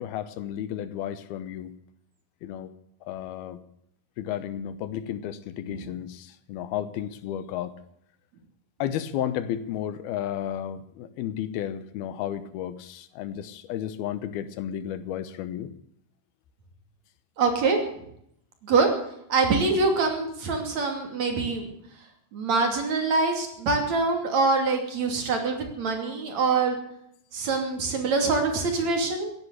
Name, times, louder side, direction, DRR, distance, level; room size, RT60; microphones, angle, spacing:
voice 1, 0.0-1.7 2.4-2.7 3.1-3.6 4.2-7.7 8.8-15.7, left 10 dB, 85° left, 13 dB, 2.9 m, -33 dB
voice 2, 17.4-17.8 18.6-18.9 19.3-21.7 22.3-26.8 27.3-29.3, right 4 dB, 50° right, 4 dB, 3.8 m, -24 dB
16.0 x 10.5 x 8.1 m, 0.73 s
omnidirectional pair, 4.4 m